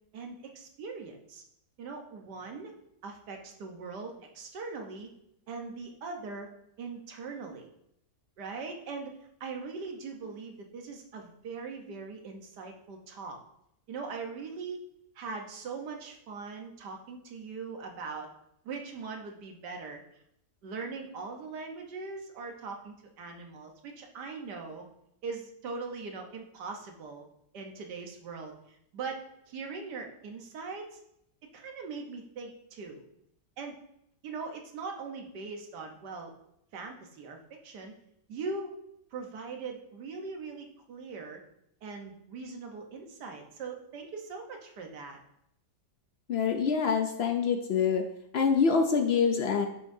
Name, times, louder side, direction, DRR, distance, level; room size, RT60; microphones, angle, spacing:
voice 1, 0.1-1.4 1.8-2.7 3.0-5.1 5.5-6.5 6.8-7.7 8.4-9.1 9.4-13.4 13.9-14.8 15.2-18.3 18.7-20.0 20.6-24.9 25.2-27.3 27.5-29.2 29.5-31.0 31.5-33.0 33.6-33.8 34.2-36.3 36.7-37.9 38.3-38.7 39.1-41.4 41.8-45.2, right 4 dB, 80° right, 3 dB, 1.6 m, -41 dB
voice 2, 46.3-48.0 48.3-49.7, left 6 dB, 80° left, 5 dB, 0.5 m, -25 dB
10.0 x 5.7 x 2.7 m, 0.77 s
omnidirectional pair, 1.8 m